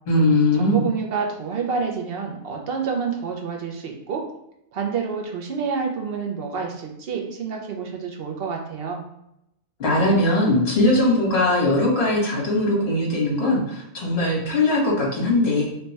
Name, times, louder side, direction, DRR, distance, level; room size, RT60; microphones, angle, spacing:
voice 1, 0.1-0.8 9.8-15.6, left 1 dB, 50° left, -4 dB, 1.3 m, -20 dB
voice 2, 0.6-4.2 4.7-9.0, right 5 dB, 60° right, 1 dB, 0.7 m, -28 dB
3.2 x 2.2 x 3.9 m, 0.80 s
omnidirectional pair, 1.4 m